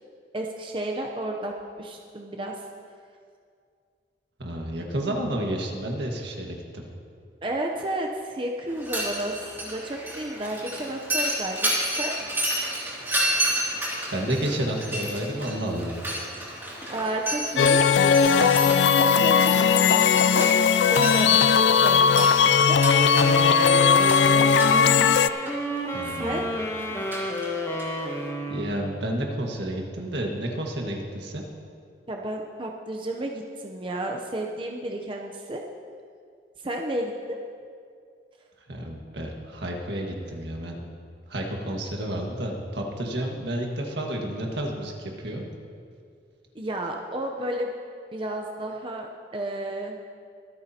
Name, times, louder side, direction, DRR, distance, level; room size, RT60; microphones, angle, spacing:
voice 1, 0.3-2.5 7.4-12.1 16.9-17.8 18.3-18.5 19.0-22.8 26.1-26.5 32.1-35.6 36.6-37.4 46.5-47.7 48.1-50.0, right 1 dB, 30° right, 1 dB, 0.7 m, -32 dB
voice 2, 4.4-6.9 14.1-16.0 25.9-26.5 28.5-31.4 38.7-40.8 41.3-45.5, right 1 dB, 80° right, 0 dB, 1.7 m, -30 dB
Mechanisms, 8.7-28.3, right 1 dB, 15° right, 2.5 m, -32 dB
sound 1, 17.6-25.3, left 6 dB, 80° left, 0.3 m, -18 dB
sound 2, 22.8-29.2, equal, 15° left, 1.0 m, -30 dB
24.0 x 9.3 x 2.9 m, 2.3 s
head